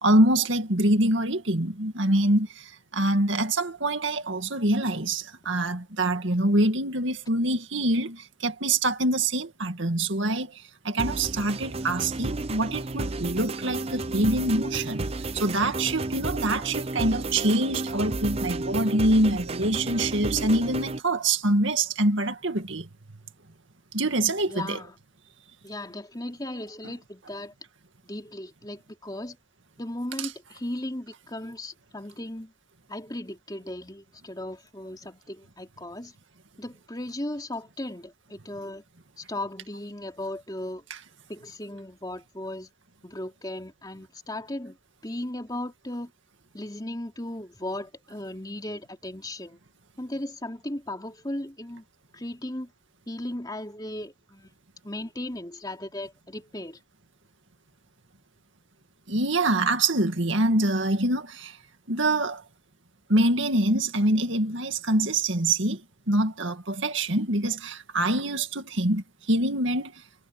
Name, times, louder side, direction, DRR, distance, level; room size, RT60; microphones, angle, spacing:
voice 1, 0.0-22.9 23.9-24.8 59.1-61.6 61.9-62.4 63.1-65.8 66.1-69.9, right 1 dB, 65° right, 2.1 m, -25 dB
sound 1, 11.0-21.0, right 2 dB, 30° right, 0.5 m, -32 dB
voice 2, 24.5-25.0 25.6-27.5 28.0-29.4 29.8-32.5 32.9-36.1 36.6-38.8 39.2-40.8 41.3-42.7 43.0-44.8 45.0-46.1 46.5-49.6 50.0-51.8 52.1-52.7 53.1-54.5 54.8-56.8, left 1 dB, 20° left, 3.3 m, -36 dB
head